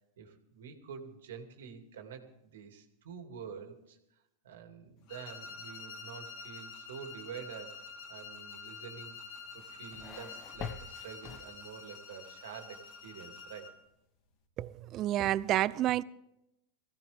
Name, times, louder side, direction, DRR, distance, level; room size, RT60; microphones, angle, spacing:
voice 1, 0.2-4.0 4.4-7.7 8.1-9.2 9.5-13.7, right 7 dB, 80° right, 2.4 m, -47 dB
sound 1, 5.1-13.8, left 5 dB, 50° left, 2.3 m, -48 dB
sound 2, 9.3-12.0, left 8 dB, 30° left, 0.7 m, -46 dB
voice 2, 14.6-16.0, right 14 dB, 40° right, 0.5 m, -29 dB
20.5 x 16.0 x 3.5 m
hypercardioid pair, 125°, 0 cm